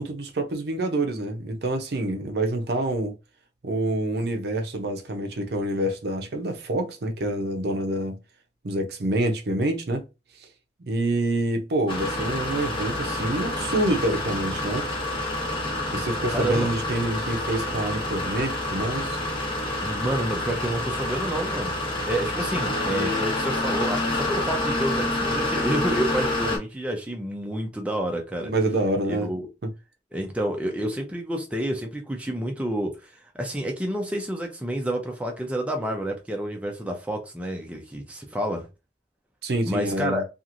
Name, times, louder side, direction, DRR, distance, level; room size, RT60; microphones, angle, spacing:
voice 1, 0.0-3.1 3.6-8.2 8.6-10.0 10.9-14.8 15.9-19.2 28.4-29.3 39.4-40.2, right 1 dB, 60° right, 0.6 m, -27 dB
sound 1, 11.9-26.6, left 1 dB, 30° left, 0.8 m, -28 dB
voice 2, 16.3-16.7 19.8-28.5 29.0-29.5 30.1-38.7 39.6-40.2, right 1 dB, 5° right, 0.5 m, -29 dB
2.9 x 2.5 x 2.5 m
head